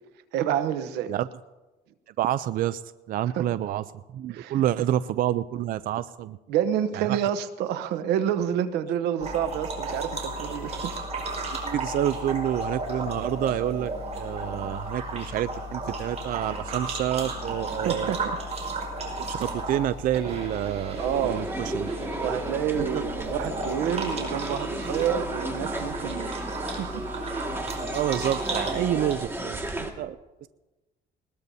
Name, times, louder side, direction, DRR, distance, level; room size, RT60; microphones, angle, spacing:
voice 1, 0.3-1.1 3.3-3.5 4.3-4.6 6.5-10.9 17.8-18.4 19.4-19.5 21.0-21.4 22.2-26.3 26.6-27.0, right 9 dB, 90° right, 12 dB, 0.9 m, -28 dB
voice 2, 2.2-2.8 3.1-3.8 4.1-6.4 6.9-7.2 11.6-13.9 14.2-18.1 19.2-21.9 22.8-23.0 27.9-30.2 30.4-30.5, right 12 dB, 60° right, 15 dB, 0.4 m, -28 dB
sound 1, 9.2-29.2, right 2 dB, 40° right, 4.9 m, -34 dB
sound 2, 20.9-29.9, right 2 dB, 15° right, 1.9 m, -34 dB
20.5 x 20.0 x 2.7 m, 1.1 s
cardioid pair, 110°, 17 cm